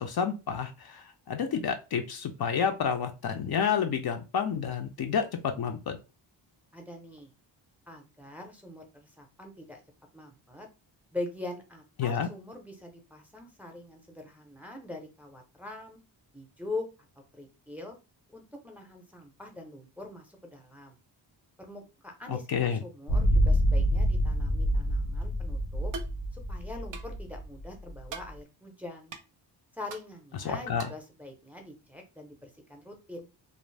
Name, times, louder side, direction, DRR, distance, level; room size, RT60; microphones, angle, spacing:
voice 1, 0.0-6.0 12.0-12.3 22.3-22.8 30.4-30.9, left 7 dB, 55° left, 5 dB, 0.5 m, -30 dB
voice 2, 6.7-7.3 7.9-9.8 10.1-10.7 11.1-16.0 16.3-16.8 17.3-18.0 18.3-21.0 21.6-25.9 26.3-29.1 29.7-33.3, left 2 dB, 5° right, 2 dB, 0.6 m, -43 dB
sound 1, 23.1-28.3, equal, 85° left, 0.8 m, -27 dB
sound 2, 25.9-26.2 26.9-27.1 28.1-28.3 29.1-29.2 29.9-30.1 30.8-31.0, right 4 dB, 45° right, 0.5 m, -41 dB
2.5 x 2.0 x 3.2 m, 0.29 s
wide cardioid pair, 110°, 46 cm